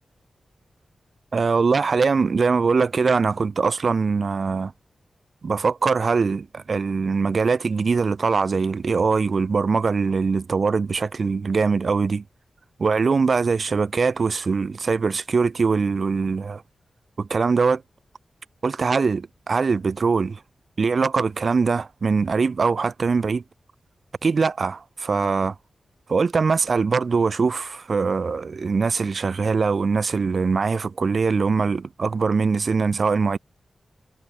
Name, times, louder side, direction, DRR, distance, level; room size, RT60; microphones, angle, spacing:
voice 1, 1.3-4.7 5.4-12.2 12.8-16.6 17.2-17.8 18.6-20.4 20.8-23.4 24.2-25.6 26.1-33.4, right 4 dB, 60° right, 4.2 m, -22 dB
cardioid pair, 65°, 0 cm